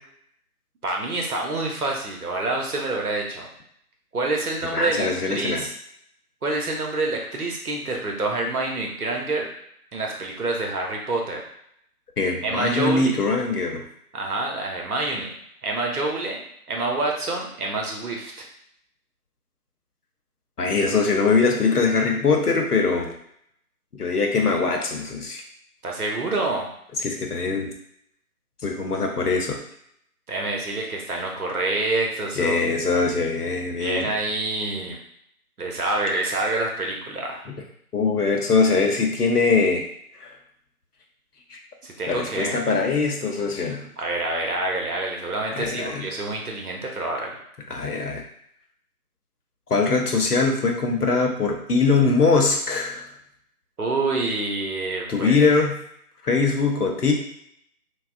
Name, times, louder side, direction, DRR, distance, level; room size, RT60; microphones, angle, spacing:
voice 1, 0.8-3.5 4.1-5.7 6.4-9.5 9.9-11.4 12.4-13.1 14.1-15.3 15.6-16.4 16.7-18.5 25.8-26.7 30.3-32.6 32.9-33.0 33.8-35.0 35.6-37.4 41.8-42.6 44.0-47.4 53.8-55.4, right 2 dB, 70° right, 0 dB, 0.9 m, -27 dB
voice 2, 4.7-5.7 12.2-13.8 20.6-23.1 24.0-25.4 27.0-27.7 28.6-29.6 32.4-34.1 37.9-39.8 40.2-40.3 41.5-41.6 42.1-43.9 45.5-46.1 47.7-48.2 49.7-53.0 55.1-55.8 56.2-57.1, left 4 dB, 80° left, 2 dB, 0.8 m, -22 dB
3.4 x 2.3 x 2.5 m, 0.72 s
figure-of-eight pair, 160°, 46 cm